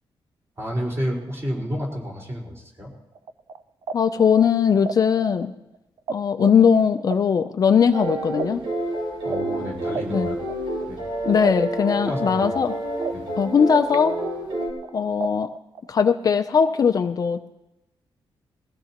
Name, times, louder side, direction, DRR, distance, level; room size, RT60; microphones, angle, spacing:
voice 1, 0.6-2.9 9.2-10.4 10.9-11.0 12.0-12.5 13.1-13.3, equal, 30° right, -2 dB, 4.6 m, -30 dB
sound 1, 3.1-6.1 6.4-11.1 11.4-13.9 14.2-15.9, right 6 dB, 55° right, 0.6 m, -34 dB
voice 2, 3.9-5.5 6.1-8.6 10.1-10.3 11.3-12.7 13.4-14.2 14.9-15.5 15.9-17.4, left 6 dB, 40° left, 7 dB, 0.5 m, -19 dB
sound 2, 7.9-14.7, right 1 dB, 75° right, 5.1 m, -29 dB
22.5 x 16.0 x 3.0 m, 0.93 s
wide cardioid pair, 160°, 9 cm